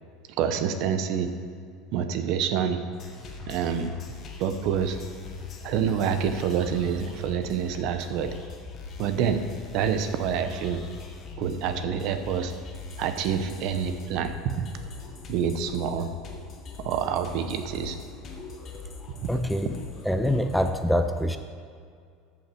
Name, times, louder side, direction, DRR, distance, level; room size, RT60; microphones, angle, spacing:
voice 1, 0.3-1.3 1.9-2.8 3.5-3.9 4.4-5.0 5.6-8.4 9.0-9.4 9.7-10.8 11.4-12.5 13.0-14.7 15.3-16.1 16.8-18.0, right 7 dB, 55° right, 8 dB, 0.8 m, -27 dB
sound 1, 2.9-20.7, left 5 dB, 35° left, 1.4 m, -41 dB
voice 2, 19.3-19.7 20.0-21.4, equal, ahead, 7 dB, 0.4 m, -25 dB
13.5 x 5.8 x 4.5 m, 2.3 s
supercardioid pair, 145°, 0 cm